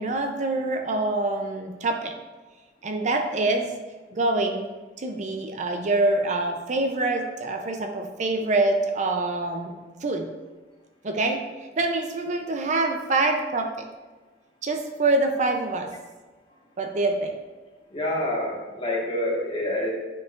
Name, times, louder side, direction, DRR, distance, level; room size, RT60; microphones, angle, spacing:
voice 1, 0.0-2.1 2.8-3.8 4.1-4.7 5.0-10.3 11.0-13.9 14.6-15.9 16.8-17.4, right 2 dB, 40° right, 4 dB, 0.5 m, -25 dB
voice 2, 17.9-19.9, left 1 dB, 30° left, -4 dB, 1.5 m, -27 dB
9.4 x 4.6 x 2.4 m, 1.3 s
head